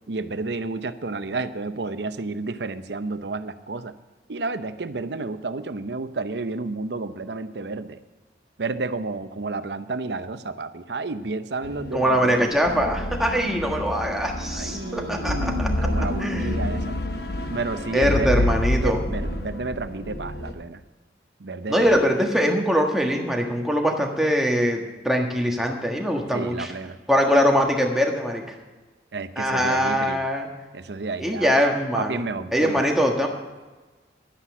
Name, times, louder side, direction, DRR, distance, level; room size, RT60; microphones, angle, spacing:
voice 1, 0.1-3.9 4.3-8.0 8.6-12.5 14.5-16.9 17.5-18.5 18.8-20.8 21.4-22.0 26.3-27.0 29.1-30.2 30.7-31.6 31.9-32.8, right 3 dB, 75° right, 11 dB, 0.7 m, -31 dB
sound 1, 11.6-20.5, left 1 dB, 65° left, 1.1 m, -28 dB
voice 2, 11.9-16.6 17.9-19.0 21.7-26.7 27.1-28.4 29.4-30.5 31.2-32.2 32.5-33.3, equal, ahead, 0 dB, 1.5 m, -22 dB
11.5 x 10.0 x 6.1 m, 1.3 s
head